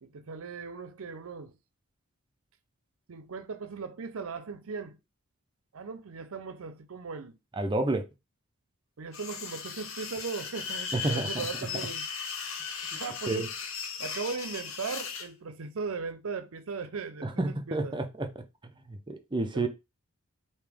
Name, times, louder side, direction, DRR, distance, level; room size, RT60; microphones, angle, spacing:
voice 1, 0.0-1.6 3.1-5.0 5.7-7.4 9.0-12.1 12.6-13.5 14.0-18.0 19.5-19.7, right 5 dB, 65° right, 0.5 m, -38 dB
voice 2, 7.5-8.0 10.9-11.5 13.3-13.5 17.2-18.3 18.9-19.7, right 2 dB, 20° right, 0.5 m, -30 dB
sound 1, 9.1-15.3, left 6 dB, 60° left, 0.8 m, -37 dB
5.0 x 2.8 x 3.4 m
head